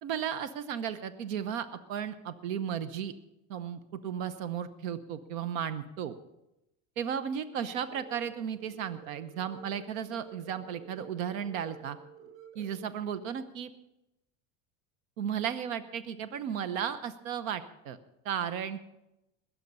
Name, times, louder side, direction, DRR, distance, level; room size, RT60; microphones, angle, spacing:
voice 1, 0.0-3.1 3.5-6.2 7.0-12.0 12.5-13.7 15.2-18.0 18.2-18.9, right 8 dB, 85° right, 12 dB, 1.0 m, -35 dB
sound 1, 7.8-12.8, right 9 dB, 10° right, 6.0 m, -51 dB
20.5 x 7.5 x 5.5 m, 0.90 s
supercardioid pair, 105°, 39 cm